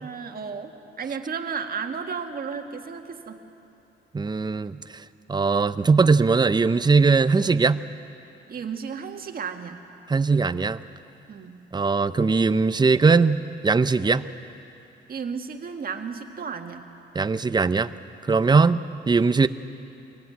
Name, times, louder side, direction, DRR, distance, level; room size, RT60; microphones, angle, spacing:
voice 1, 0.0-3.4 8.5-9.8 11.3-11.6 15.1-16.9, right 6 dB, 50° right, 5 dB, 1.9 m, -33 dB
voice 2, 4.1-4.8 5.3-7.8 10.1-10.8 11.7-14.2 17.1-17.9 18.3-18.8 19.1-19.5, right 4 dB, 20° right, 13 dB, 0.7 m, -20 dB
23.5 x 16.5 x 9.6 m, 2.7 s
cardioid pair, 90°, 20 cm